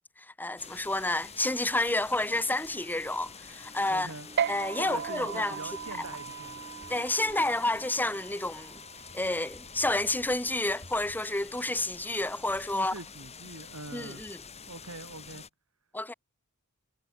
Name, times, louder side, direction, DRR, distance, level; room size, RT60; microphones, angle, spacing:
voice 1, 0.4-4.1 4.5-5.6 6.9-8.8 9.1-12.9 13.9-14.4 15.9-16.1, left 2 dB, 10° left, 1.4 m, -30 dB
sound 1, 0.6-15.5, left 5 dB, 30° left, 6.3 m, -48 dB
sound 2, 1.7-9.8, right 1 dB, 15° right, 3.5 m, -54 dB
voice 2, 3.9-4.3 4.8-6.6 12.7-14.2 14.7-15.4, right 2 dB, 85° right, 4.6 m, -43 dB
sound 3, 4.4-11.2, right 8 dB, 50° right, 0.4 m, -38 dB
head